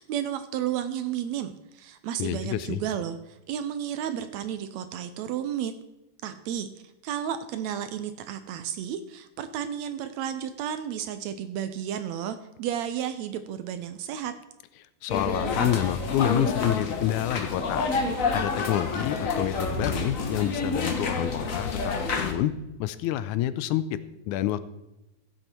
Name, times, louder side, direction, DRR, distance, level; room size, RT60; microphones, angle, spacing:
voice 1, 0.0-5.7 6.2-6.7 7.0-14.4, right 9 dB, 75° right, 11 dB, 1.7 m, -32 dB
voice 2, 2.2-2.8 15.0-17.9 18.3-22.5 22.8-24.0 24.3-24.6, left 12 dB, 80° left, 14 dB, 1.9 m, -28 dB
sound 1, 15.1-22.3, left 4 dB, 60° left, 0.8 m, -28 dB
15.5 x 7.9 x 4.4 m, 0.96 s
omnidirectional pair, 3.5 m